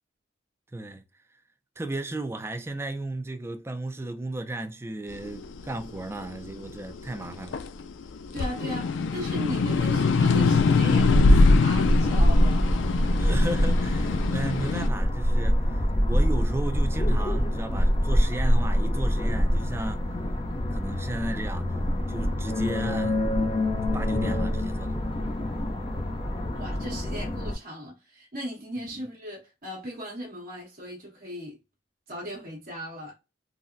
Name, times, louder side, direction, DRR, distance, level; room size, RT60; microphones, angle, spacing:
voice 1, 0.7-1.0 1.8-7.6 13.2-20.0 20.7-21.8 22.1-23.2 23.9-24.9, right 2 dB, 15° right, 0.4 m, -34 dB
sound 1, 5.3-7.8 8.2-14.9, left 3 dB, 85° left, 0.4 m, -22 dB
voice 2, 8.3-12.6 26.5-31.6 32.1-33.1, equal, 50° right, 1.3 m, -37 dB
sound 2, 11.7-27.5, equal, 30° left, 0.6 m, -25 dB
3.9 x 2.1 x 2.5 m
head